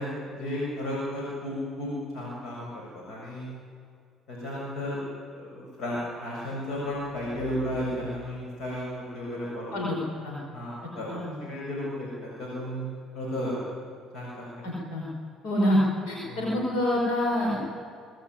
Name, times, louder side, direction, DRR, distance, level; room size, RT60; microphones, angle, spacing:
voice 1, 0.0-3.5 4.3-5.0 5.3-9.9 10.5-11.1 11.4-12.9 13.1-13.6 14.1-14.7 16.3-16.5, left 1 dB, 70° left, -4 dB, 7.5 m, -34 dB
voice 2, 14.6-15.1 15.4-15.8 16.1-17.6, left 1 dB, 90° left, -2 dB, 5.2 m, -26 dB
22.0 x 19.5 x 9.8 m, 2.2 s
supercardioid pair, 80°, 0 cm